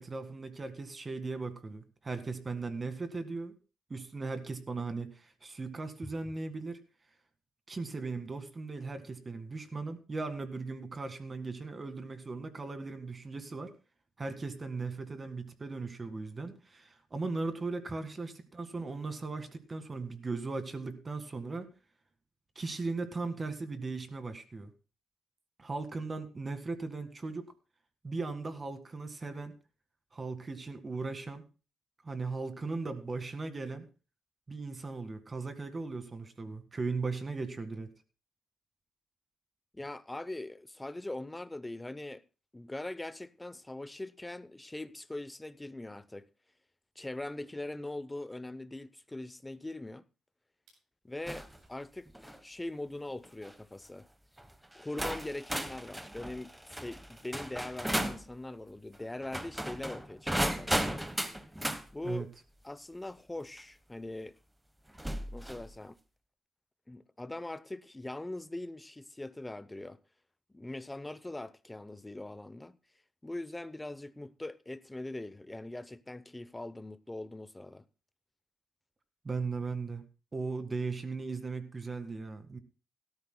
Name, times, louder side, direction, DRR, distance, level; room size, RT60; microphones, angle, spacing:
voice 1, 0.0-3.5 3.9-6.8 7.7-13.7 14.2-21.7 22.6-24.7 25.6-27.5 28.0-29.5 30.1-31.4 32.0-33.9 34.5-37.9 62.0-62.3 79.2-80.0 80.3-82.6, right 3 dB, 30° right, 1.9 m, -38 dB
voice 2, 39.7-42.2 42.5-46.3 47.0-50.0 51.0-54.1 54.7-61.0 61.9-62.3 62.6-64.3 65.3-66.0 66.9-70.0 70.5-72.8 73.2-77.8, left 2 dB, 10° left, 0.7 m, -41 dB
sound 1, 50.1-50.2 50.6-50.9 51.5-51.9 53.4-53.5 55.5-55.8, right 4 dB, 80° right, 7.7 m, -65 dB
sound 2, 51.3-51.6 52.1-52.4 53.2-53.5 54.4-54.5 55.0-58.2 59.2-61.8 63.6-63.7 65.0-65.7, right 1 dB, 5° right, 1.1 m, -35 dB
17.5 x 13.0 x 2.3 m
cardioid pair, 90°, 0 cm